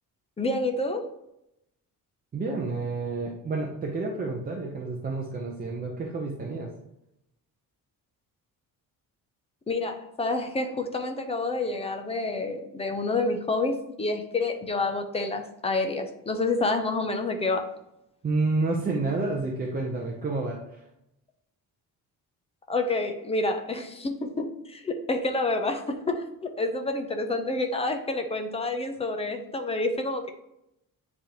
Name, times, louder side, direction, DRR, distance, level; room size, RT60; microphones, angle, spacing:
voice 1, 0.4-1.1 9.7-17.7 22.7-30.3, left 2 dB, 15° left, 5 dB, 0.6 m, -28 dB
voice 2, 2.3-6.7 18.2-20.8, right 3 dB, 25° right, -1 dB, 0.7 m, -29 dB
9.7 x 3.4 x 2.9 m, 0.83 s
cardioid pair, 170°, 35 cm